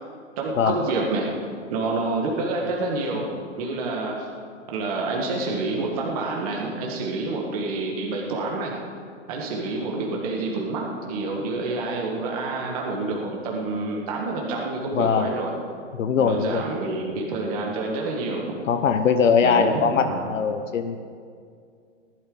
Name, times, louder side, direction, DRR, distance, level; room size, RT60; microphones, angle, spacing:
voice 1, 0.4-1.3 1.7-4.3 4.7-8.7 9.3-15.6 16.2-18.6 19.4-20.2, right 3 dB, 30° right, -2 dB, 1.6 m, -28 dB
voice 2, 15.0-15.3 16.0-16.6 18.7-21.0, left 6 dB, 80° left, 7 dB, 1.1 m, -21 dB
18.0 x 12.0 x 3.9 m, 2.3 s
hypercardioid pair, 170°, 38 cm